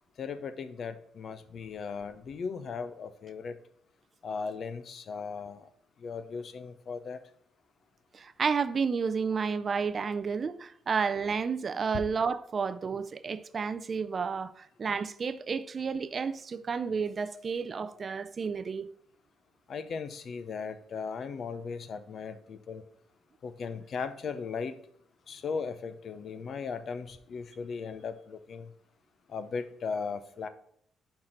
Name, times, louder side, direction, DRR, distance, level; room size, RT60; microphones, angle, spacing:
voice 1, 0.2-3.6 4.2-5.7 6.0-7.2 19.7-22.8 23.4-24.8 25.3-28.7 29.3-30.5, left 5 dB, 55° left, 0.6 m, -37 dB
voice 2, 8.1-18.9, right 5 dB, 40° right, 0.4 m, -31 dB
5.7 x 4.4 x 5.0 m
cardioid pair, 90°, 0 cm